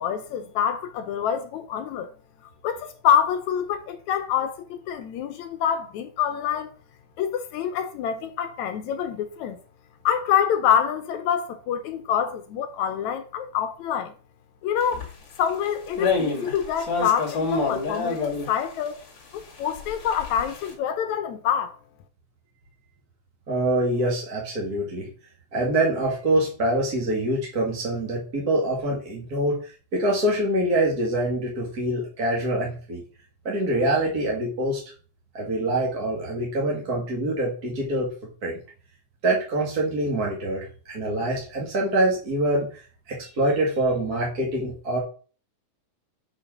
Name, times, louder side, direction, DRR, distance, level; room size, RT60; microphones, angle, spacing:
voice 1, 0.0-2.1 2.6-6.7 7.2-9.6 10.1-14.1 14.6-15.1 15.4-19.0 19.3-21.7, left 8 dB, 70° left, 1.9 m, -26 dB
sound 1, 14.9-15.1 15.5-15.7 16.0-18.8 19.5-20.7, left 4 dB, 40° left, 2.6 m, -27 dB
voice 2, 23.5-25.1 25.5-33.0 33.4-34.8 35.3-38.1 38.4-38.6 39.2-42.8 43.1-45.0, right 1 dB, 35° right, 2.0 m, -25 dB
6.7 x 5.7 x 6.2 m
omnidirectional pair, 3.8 m